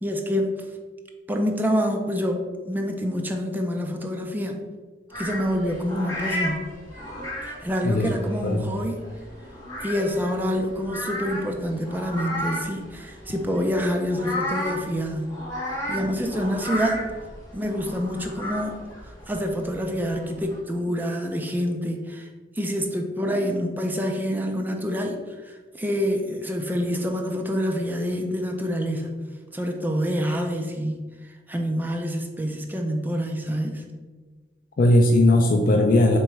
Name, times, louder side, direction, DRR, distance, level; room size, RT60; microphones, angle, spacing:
voice 1, 0.0-0.6 1.3-4.6 5.2-6.7 7.4-9.0 9.8-15.3 15.9-17.1 17.5-18.8 19.1-22.3 22.6-29.1 29.5-33.9, equal, 10° right, 2 dB, 0.4 m, -27 dB
sound 1, 5.1-20.6, equal, 20° left, 1.4 m, -34 dB
voice 2, 34.8-36.2, left 1 dB, 50° left, 2 dB, 0.4 m, -18 dB
3.6 x 3.0 x 4.4 m, 1.4 s
head